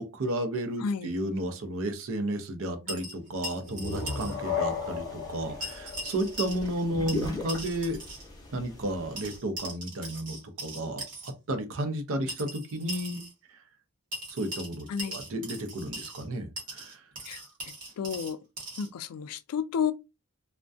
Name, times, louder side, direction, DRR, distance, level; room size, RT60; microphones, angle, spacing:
voice 1, 0.0-8.0 8.5-13.2 14.3-14.9 15.1-17.0, right 1 dB, 65° right, 0.6 m, -33 dB
voice 2, 0.8-1.1 2.6-3.1 14.9-15.2 17.2-18.4 18.8-19.9, left 7 dB, 85° left, 0.3 m, -32 dB
sound 1, 2.9-4.4 4.6-4.7 5.6-6.8 7.1-8.3 9.2-11.3 12.3-13.3 14.1-16.3 16.6-18.9, right 1 dB, 40° right, 1.1 m, -40 dB
sound 2, 3.5-7.1, left 5 dB, 50° left, 0.7 m, -35 dB
sound 3, 3.9-9.4, left 2 dB, 20° left, 0.7 m, -41 dB
2.3 x 2.1 x 2.5 m
head